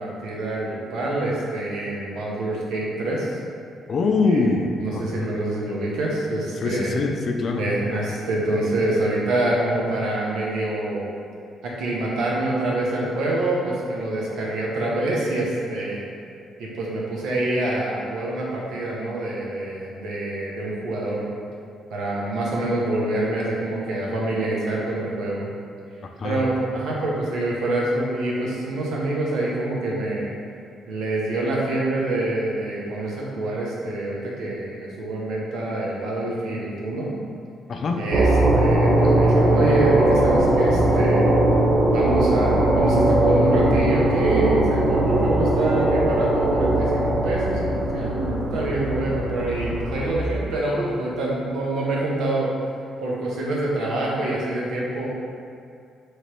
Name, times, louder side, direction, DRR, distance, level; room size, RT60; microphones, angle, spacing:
voice 1, 0.0-3.3 4.3-4.4 4.8-6.9 7.6-11.1 11.6-16.0 16.6-21.2 21.9-25.5 26.2-30.3 30.9-37.1 38.0-41.3 41.9-52.5 53.0-55.1, right 1 dB, 85° right, -4 dB, 0.9 m, -26 dB
voice 2, 3.9-5.0 6.6-7.6 26.2-26.4 37.7-38.1, left 3 dB, 50° left, 3 dB, 0.4 m, -23 dB
sound 1, 38.1-50.1, right 1 dB, 55° right, 0.6 m, -20 dB
3.2 x 3.1 x 4.4 m, 2.4 s
cardioid pair, 90°, 0 cm